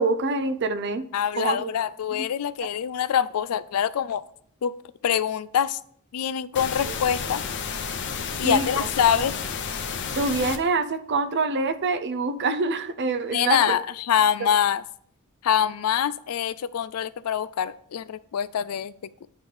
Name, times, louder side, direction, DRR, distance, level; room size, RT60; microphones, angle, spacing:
voice 1, 0.0-1.1 1.4-1.8 2.1-2.2 6.9-7.0 8.4-8.7 9.2-9.3 10.2-13.7, right 3 dB, 55° right, 10 dB, 0.5 m, -25 dB
voice 2, 1.1-4.2 4.6-4.7 5.0-5.8 6.1-7.4 8.4-9.3 13.3-14.8 15.4-18.9 19.2-19.3, left 9 dB, 90° left, 16 dB, 0.4 m, -24 dB
sound 1, 6.5-10.6, left 6 dB, 55° left, 0.7 m, -31 dB
9.0 x 3.2 x 5.3 m, 0.64 s
head